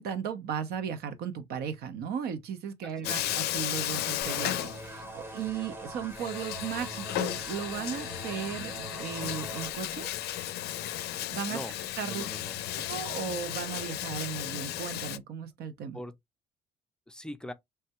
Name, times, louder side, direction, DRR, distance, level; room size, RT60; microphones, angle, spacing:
voice 1, 0.0-10.1 11.3-11.6 12.0-12.3 12.8-16.0, right 7 dB, 70° right, 0.7 m, -36 dB
voice 2, 2.8-3.2 11.5-12.6 15.9-16.2 17.1-17.5, equal, 5° left, 0.4 m, -42 dB
Bathtub (filling or washing), 3.0-5.3 5.6-5.7 6.1-15.2, left 13 dB, 70° left, 0.4 m, -34 dB
sound 1, 4.2-9.7, right 2 dB, 15° right, 0.8 m, -42 dB
3.3 x 2.2 x 2.8 m
cardioid pair, 110°, 17 cm